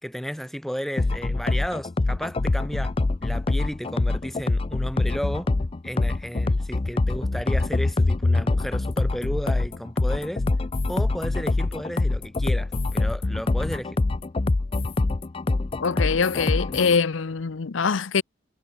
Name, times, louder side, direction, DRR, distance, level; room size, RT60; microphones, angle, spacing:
voice 1, 0.0-2.9 3.2-5.5 5.8-10.4 10.9-14.0, equal, ahead, 3.3 m, -33 dB
sound 1, 1.0-17.0, left 2 dB, 30° left, 0.4 m, -24 dB
voice 2, 15.8-18.2, left 5 dB, 80° left, 0.7 m, -23 dB
head